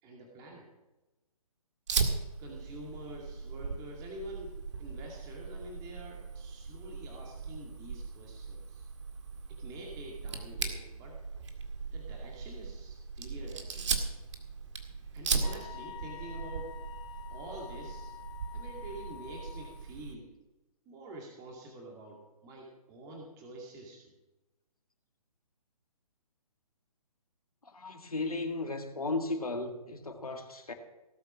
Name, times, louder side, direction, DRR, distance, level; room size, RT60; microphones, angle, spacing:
voice 1, 0.0-0.7 2.4-8.9 9.5-11.2 11.9-14.0 15.1-16.7 17.3-18.1 18.5-20.3 20.9-24.1, right 1 dB, 20° right, 2.3 m, -47 dB
Fire, 1.9-20.1, right 5 dB, 50° right, 2.0 m, -38 dB
Wind instrument woodwind instrument, 15.4-19.8, left 11 dB, 50° left, 1.8 m, -48 dB
voice 2, 27.6-30.7, left 3 dB, 75° left, 2.0 m, -35 dB
18.0 x 8.0 x 6.2 m
figure-of-eight pair, 135°, 19 cm